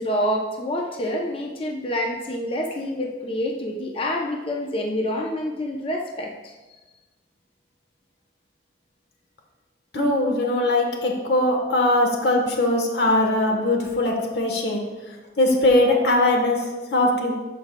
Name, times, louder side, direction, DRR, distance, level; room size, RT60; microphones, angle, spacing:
voice 1, 0.0-6.5, left 1 dB, 30° left, 0 dB, 0.6 m, -27 dB
voice 2, 9.9-14.8 15.4-17.3, left 1 dB, 70° left, 1 dB, 1.1 m, -21 dB
12.0 x 4.7 x 2.2 m, 1.2 s
head